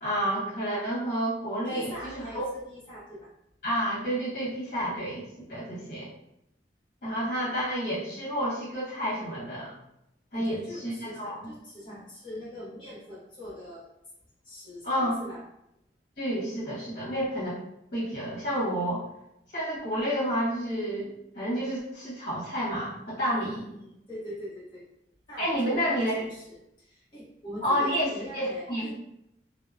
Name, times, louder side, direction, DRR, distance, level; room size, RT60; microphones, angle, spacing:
voice 1, 0.0-2.5 3.6-6.1 7.0-9.7 10.3-11.3 14.8-15.2 16.2-17.6 17.9-19.0 19.5-23.6 25.4-26.2 27.6-28.9, equal, 55° left, -8 dB, 1.3 m, -30 dB
voice 2, 1.6-3.3 10.3-13.9 14.4-15.4 23.3-24.8 25.3-28.9, equal, 25° left, -10 dB, 0.9 m, -42 dB
2.7 x 2.0 x 2.4 m, 0.81 s
head